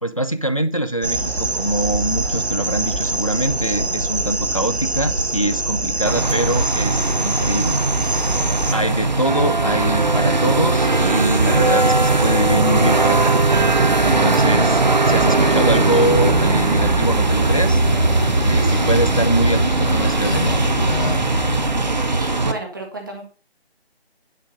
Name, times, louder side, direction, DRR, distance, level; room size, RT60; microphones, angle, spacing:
voice 1, 0.0-7.8 8.7-13.3 14.0-17.8 18.4-20.5, right 1 dB, 35° left, 14 dB, 0.4 m, -23 dB
sound 1, 1.0-8.7, right 2 dB, 80° right, 1.4 m, -24 dB
sound 2, 6.1-22.5, right 3 dB, 45° right, 0.9 m, -19 dB
sound 3, 15.9-21.8, equal, 15° left, 1.2 m, -23 dB
voice 2, 18.4-18.9 22.1-23.2, right 2 dB, 20° right, 3 dB, 1.3 m, -34 dB
10.0 x 3.5 x 6.3 m, 0.37 s
figure-of-eight pair, 165°, 32 cm